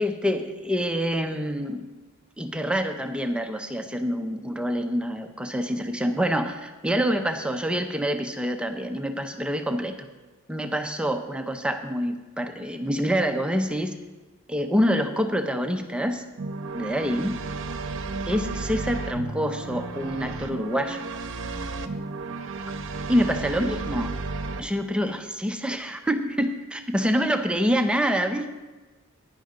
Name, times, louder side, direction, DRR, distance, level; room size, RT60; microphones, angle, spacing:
voice 1, 0.0-1.9 2.4-10.1 10.5-14.0 14.5-16.2 16.7-17.4 18.3-21.0 23.1-24.2 24.6-28.5, equal, 5° right, 6 dB, 0.5 m, -26 dB
sound 1, 16.4-24.6, right 3 dB, 60° right, 0.7 m, -33 dB
10.5 x 10.5 x 3.9 m, 1.2 s
head